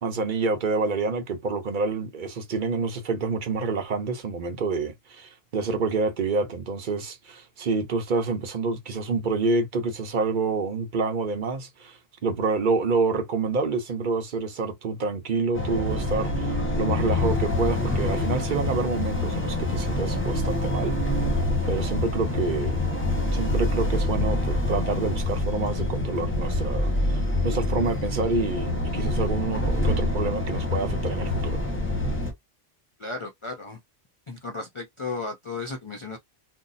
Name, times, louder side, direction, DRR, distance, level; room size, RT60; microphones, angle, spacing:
voice 1, 0.0-21.0 21.7-22.8 23.3-31.6, right 4 dB, 50° right, 0.8 m, -28 dB
sound 1, 15.5-32.3, left 2 dB, 15° left, 0.8 m, -26 dB
voice 2, 33.0-33.8 34.3-36.2, left 3 dB, 45° left, 0.4 m, -34 dB
2.6 x 2.0 x 3.9 m
omnidirectional pair, 1.1 m